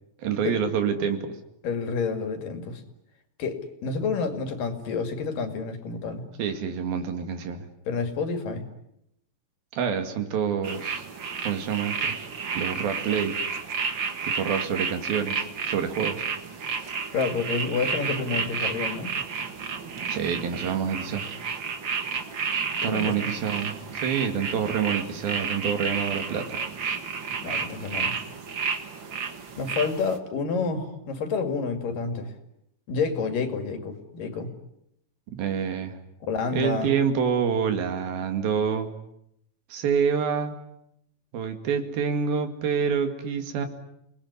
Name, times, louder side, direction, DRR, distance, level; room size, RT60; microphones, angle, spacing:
voice 1, 0.2-1.3 6.4-7.7 9.7-11.0 11.4-12.1 12.5-13.4 14.2-16.2 20.1-21.2 22.8-26.6 35.3-36.0 36.5-38.9 39.7-40.6 41.3-43.7, right 7 dB, 85° right, 7 dB, 4.0 m, -27 dB
voice 2, 1.6-2.8 3.4-6.3 7.9-8.6 17.1-19.1 22.8-23.2 27.4-28.2 29.6-32.4 32.9-34.5 36.3-36.9, left 4 dB, 70° left, 7 dB, 4.1 m, -29 dB
sound 1, 10.6-30.2, right 5 dB, 45° right, 1.8 m, -31 dB
29.5 x 20.0 x 9.8 m, 0.80 s
omnidirectional pair, 4.1 m